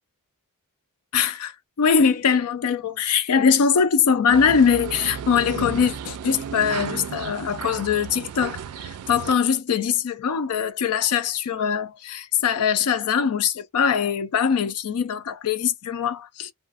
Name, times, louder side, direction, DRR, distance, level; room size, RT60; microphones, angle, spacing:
voice 1, 1.1-16.5, left 6 dB, 85° left, 0.4 m, -22 dB
sound 1, 4.3-9.3, right 8 dB, 85° right, 0.3 m, -34 dB
2.4 x 2.4 x 2.4 m
head